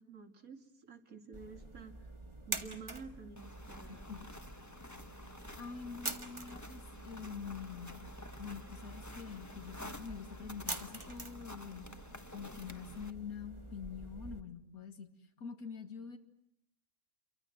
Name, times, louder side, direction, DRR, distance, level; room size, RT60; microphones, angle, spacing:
voice 1, 0.0-2.1 2.5-4.1, right 5 dB, 70° right, 6 dB, 2.8 m, -50 dB
sound 1, 1.3-14.4, right 2 dB, 20° right, 1.8 m, -46 dB
sound 2, 3.4-13.1, left 1 dB, 10° left, 1.3 m, -51 dB
voice 2, 3.9-4.2 5.6-8.0 8.4-11.9 12.3-16.2, left 6 dB, 85° left, 6 dB, 2.3 m, -46 dB
29.0 x 24.0 x 7.8 m, 0.76 s
omnidirectional pair, 1.5 m